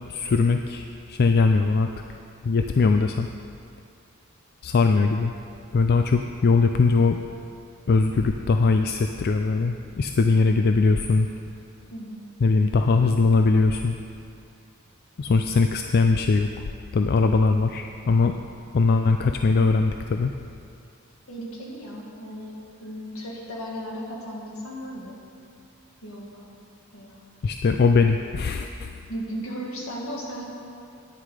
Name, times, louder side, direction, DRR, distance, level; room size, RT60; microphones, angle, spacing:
voice 1, 0.1-1.9 2.4-3.3 4.6-5.3 5.7-7.2 7.9-11.3 12.4-14.0 15.2-16.6 16.9-18.3 18.7-20.3 27.4-29.0, left 4 dB, 50° left, 6 dB, 0.4 m, -21 dB
voice 2, 11.9-12.3 21.3-22.5 22.8-25.2 26.0-26.5 26.9-27.2 29.1-30.4, equal, 75° left, -2 dB, 2.0 m, -36 dB
9.9 x 9.6 x 4.9 m, 2.5 s
head